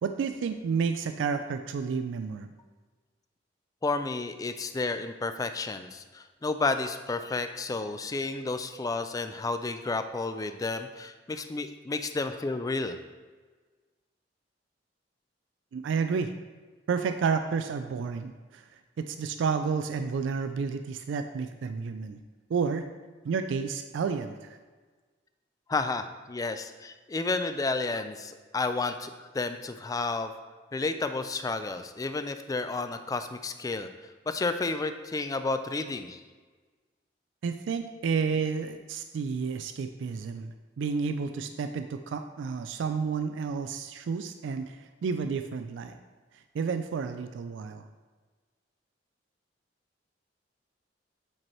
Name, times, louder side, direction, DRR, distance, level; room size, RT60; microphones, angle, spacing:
voice 1, 0.0-2.5 15.7-16.3 16.9-18.6 19.0-22.2 22.5-22.8 23.2-24.6 37.4-45.9 46.5-47.8, right 5 dB, 85° right, 8 dB, 0.3 m, -31 dB
voice 2, 3.8-13.0 25.7-30.3 30.7-33.9 34.3-36.2, left 3 dB, 20° left, 9 dB, 0.3 m, -31 dB
8.7 x 4.4 x 3.1 m, 1.4 s
head